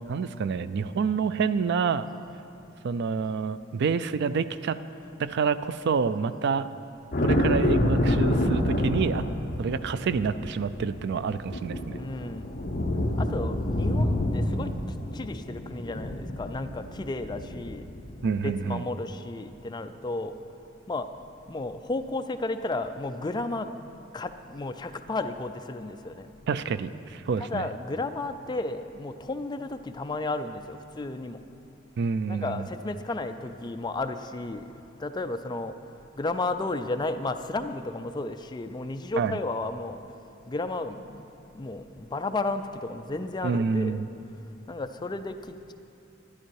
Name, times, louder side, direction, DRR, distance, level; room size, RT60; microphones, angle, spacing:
voice 1, 0.1-2.1 2.8-4.8 5.2-6.7 7.2-9.2 9.6-12.0 18.2-18.8 26.5-27.6 32.0-32.7 39.2-39.4 43.4-44.1, right 5 dB, 55° right, 14 dB, 0.4 m, -28 dB
sound 1, 7.1-18.5, left 1 dB, 40° left, 0.8 m, -28 dB
voice 2, 12.0-12.4 13.2-14.7 15.1-17.8 18.4-20.3 20.9-21.1 21.5-23.7 24.1-26.3 27.4-31.4 32.3-34.6 35.0-35.7 36.2-40.0 40.5-41.2 41.6-44.0 44.7-45.7, left 2 dB, 20° left, 8 dB, 0.4 m, -33 dB
11.5 x 10.5 x 4.7 m, 2.6 s
head